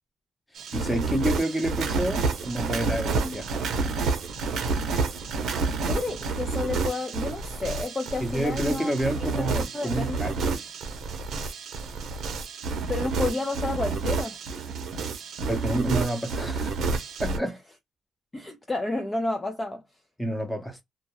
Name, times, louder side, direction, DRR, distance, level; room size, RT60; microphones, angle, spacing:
sound 1, 0.6-17.4, right 4 dB, 70° right, 0.6 m, -29 dB
voice 1, 0.7-3.6 8.2-10.6 15.5-16.7 17.2-17.6 20.2-20.8, right 1 dB, 5° left, 0.8 m, -29 dB
voice 2, 5.9-8.9 9.2-9.5 9.7-10.6 12.9-14.3 17.4-17.5 18.3-19.8, left 2 dB, 20° left, 0.4 m, -31 dB
2.2 x 2.1 x 2.9 m
cardioid pair, 90°, 0 cm